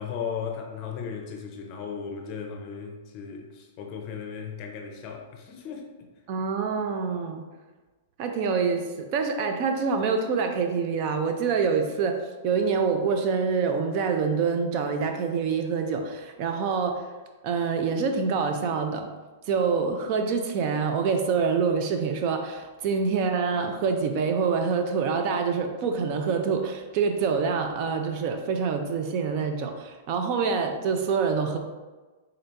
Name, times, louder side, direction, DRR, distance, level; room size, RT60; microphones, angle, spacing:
voice 1, 0.0-5.8, left 6 dB, 40° left, 2 dB, 0.6 m, -36 dB
voice 2, 6.3-7.5 8.2-17.0 17.4-19.1 19.5-31.6, right 5 dB, 45° right, 5 dB, 0.4 m, -26 dB
3.8 x 2.7 x 3.3 m, 1.3 s
hypercardioid pair, 145°, 0 cm